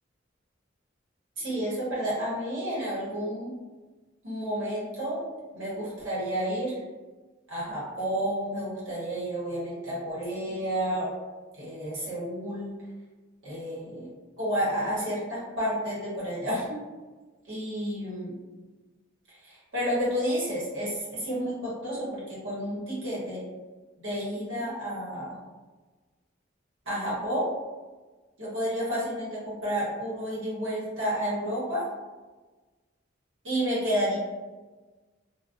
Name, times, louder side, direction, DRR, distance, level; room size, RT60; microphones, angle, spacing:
voice 1, 1.4-3.5 4.2-5.2 5.5-6.8 7.5-11.1 11.5-12.7 13.4-14.1 14.4-16.8 17.5-18.3 19.3-23.4 24.0-25.4 26.8-27.5 28.4-31.9 33.4-34.2, equal, 70° right, -7 dB, 1.0 m, -30 dB
2.4 x 2.1 x 2.4 m, 1.3 s
head